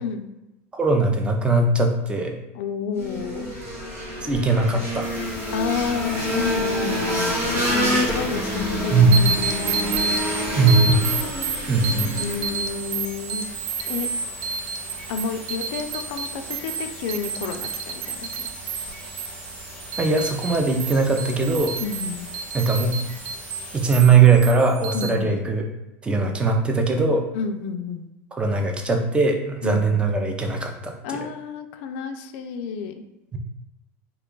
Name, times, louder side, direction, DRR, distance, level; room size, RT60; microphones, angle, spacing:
voice 1, 0.7-2.4 4.2-5.1 8.9-9.1 10.6-11.0 11.7-12.2 20.0-21.8 22.5-23.0 23.7-25.6 26.0-27.2 28.3-31.0 33.3-33.4, right 4 dB, 15° right, 3 dB, 0.4 m, -20 dB
voice 2, 2.5-3.5 5.5-9.4 10.5-11.0 12.2-13.5 13.9-14.1 15.1-18.5 21.8-22.3 24.9-25.3 27.3-28.1 29.6-30.0 31.0-32.9, left 6 dB, 65° left, 7 dB, 0.3 m, -30 dB
sound 1, 2.9-12.8, equal, 35° right, 1.0 m, -27 dB
sound 2, 5.0-24.0, left 1 dB, 20° left, 0.7 m, -42 dB
sound 3, 9.1-25.1, right 5 dB, 75° right, 0.4 m, -31 dB
2.9 x 2.3 x 3.7 m, 0.96 s
supercardioid pair, 125°, 8 cm